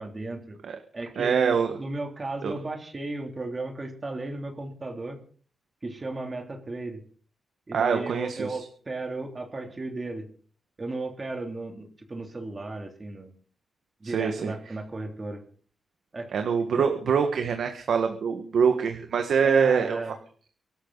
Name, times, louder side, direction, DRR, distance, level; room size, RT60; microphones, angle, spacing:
voice 1, 0.0-0.6 0.9-5.2 5.8-7.0 7.7-10.2 10.8-13.3 14.0-15.4 16.1-16.3 16.8-16.9 19.4-20.1, right 2 dB, 25° right, 3 dB, 3.1 m, -35 dB
voice 2, 1.2-1.7 2.4-2.6 7.7-8.6 14.0-14.5 16.3-20.0, right 6 dB, 70° right, 6 dB, 1.6 m, -24 dB
23.5 x 12.5 x 4.1 m, 0.43 s
wide cardioid pair, 130°, 0 cm